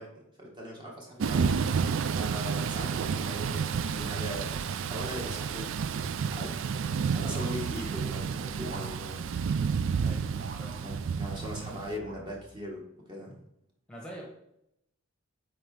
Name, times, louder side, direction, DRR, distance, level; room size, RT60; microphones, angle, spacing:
voice 1, 0.0-1.5 2.1-6.6 7.1-9.3 10.8-13.4, equal, 20° right, -2 dB, 1.2 m, -40 dB
Thunder / Rain, 1.2-12.0, right 6 dB, 60° right, 0.3 m, -30 dB
sound 1, 7.2-8.2 8.6-9.6 10.4-11.4 12.0-12.7, right 2 dB, 40° right, 1.0 m, -48 dB
voice 2, 10.0-10.8 11.7-11.8 13.9-14.3, equal, 5° left, -2 dB, 1.1 m, -46 dB
7.6 x 4.6 x 3.7 m, 0.79 s
head